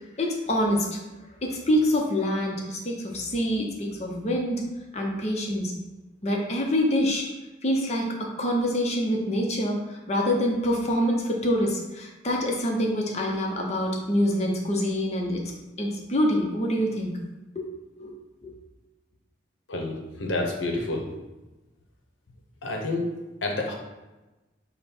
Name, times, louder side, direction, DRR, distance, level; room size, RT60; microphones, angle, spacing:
voice 1, 0.2-1.0 1.4-4.6 4.9-5.7 6.2-7.3 7.6-8.1 8.4-15.4 15.8-17.1 17.5-17.7 18.0-18.1 18.4-18.5, equal, 35° left, 0 dB, 0.7 m, -26 dB
voice 2, 19.7-21.0 22.6-23.1 23.4-23.7, left 2 dB, 90° left, 1 dB, 0.9 m, -28 dB
5.2 x 2.2 x 4.3 m, 1.1 s
head